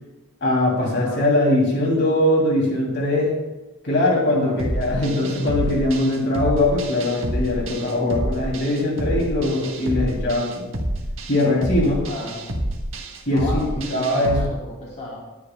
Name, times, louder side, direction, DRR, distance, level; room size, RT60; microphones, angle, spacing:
voice 1, 0.4-3.4 3.8-10.6 11.3-12.0 13.3-14.5, left 1 dB, 50° left, -2 dB, 2.9 m, -21 dB
voice 2, 0.9-1.3 4.2-4.6 12.0-12.4 13.3-15.2, left 1 dB, 30° left, -4 dB, 2.5 m, -34 dB
sound 1, 4.6-14.5, right 1 dB, 60° right, 1.5 m, -28 dB
19.5 x 9.9 x 2.3 m, 1.0 s
head